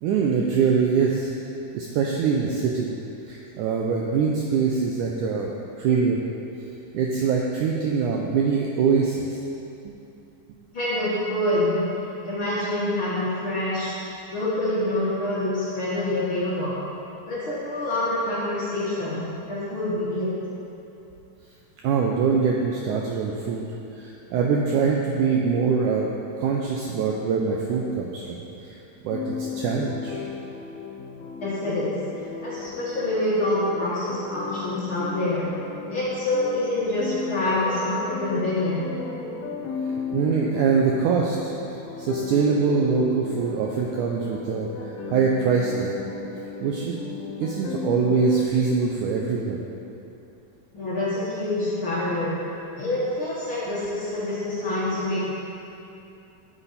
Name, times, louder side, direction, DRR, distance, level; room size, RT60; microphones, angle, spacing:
voice 1, 0.0-1.3 1.7-2.9 3.3-5.5 5.8-6.2 6.9-9.4 9.8-9.9 21.8-23.7 24.0-26.1 26.4-28.8 29.0-30.2 40.1-41.6 42.0-44.7 45.1-46.0 46.6-47.0 47.4-49.6, right 5 dB, 80° right, -1 dB, 1.8 m, -23 dB
voice 2, 10.7-11.9 12.2-13.9 14.3-16.8 17.2-20.3 31.3-35.5 35.9-38.8 50.7-52.4 52.8-55.3, left 1 dB, 55° left, -9 dB, 1.6 m, -26 dB
sound 1, 29.1-48.5, left 5 dB, 90° left, 2.6 m, -35 dB
9.0 x 8.7 x 4.2 m, 2.8 s
omnidirectional pair, 4.2 m